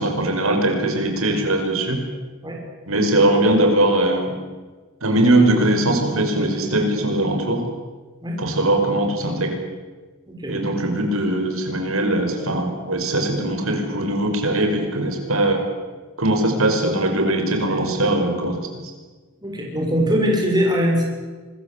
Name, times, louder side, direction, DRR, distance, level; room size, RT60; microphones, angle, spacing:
voice 1, 0.0-2.0 2.9-4.3 5.0-7.6 8.4-9.6 10.5-15.6 16.2-18.7, right 1 dB, 85° right, 4 dB, 5.7 m, -20 dB
voice 2, 10.3-10.6 19.4-21.0, equal, 20° right, 0 dB, 6.4 m, -21 dB
26.0 x 21.0 x 8.5 m, 1.3 s
head